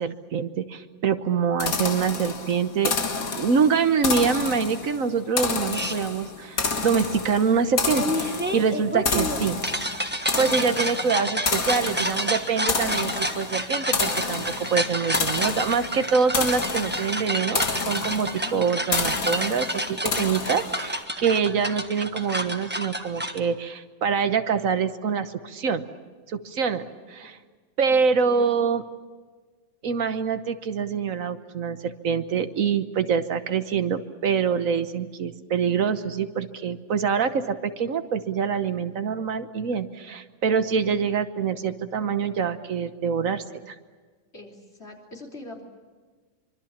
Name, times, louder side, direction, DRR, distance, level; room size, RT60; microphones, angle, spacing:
voice 1, 0.0-9.6 10.4-25.8 26.3-27.4 27.8-28.8 29.8-43.7, right 6 dB, 75° right, 10 dB, 1.5 m, -25 dB
sound 1, 1.6-21.0, left 4 dB, 80° left, 2.1 m, -30 dB
sound 2, 5.7-6.0 7.9-23.4, equal, 10° right, 1.3 m, -29 dB
voice 2, 18.4-18.8 27.9-28.6 44.3-45.6, left 3 dB, 50° left, 0 dB, 3.8 m, -42 dB
25.0 x 24.5 x 7.3 m, 1.4 s
omnidirectional pair, 1.4 m